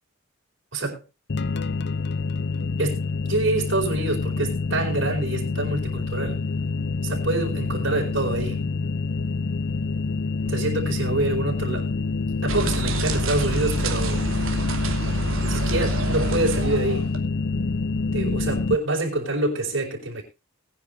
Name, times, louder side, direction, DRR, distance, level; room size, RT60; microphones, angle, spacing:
sound 1, 1.3-18.8, left 3 dB, 55° left, 0.7 m, -27 dB
voice 1, 2.8-6.4 7.0-8.6 10.4-11.9 12.4-14.3 15.5-17.1 18.1-20.2, right 2 dB, 70° right, 4.8 m, -26 dB
sound 2, 12.5-17.2, right 2 dB, 85° right, 2.7 m, -28 dB
21.0 x 9.7 x 2.6 m
head